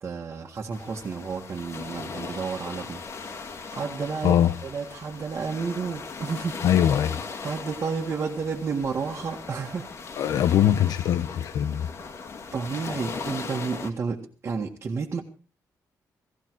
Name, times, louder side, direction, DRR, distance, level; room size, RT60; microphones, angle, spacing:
voice 1, 0.0-3.0 3.3-6.6 7.4-9.9 12.5-15.2, right 5 dB, 35° right, -3 dB, 1.8 m, -31 dB
sound 1, 0.7-13.9, left 4 dB, 45° left, 2.2 m, -38 dB
voice 2, 4.2-4.5 6.6-7.2 10.2-11.9, left 10 dB, 90° left, 9 dB, 1.1 m, -22 dB
17.5 x 16.0 x 4.8 m, 0.37 s
wide cardioid pair, 160°, 6 cm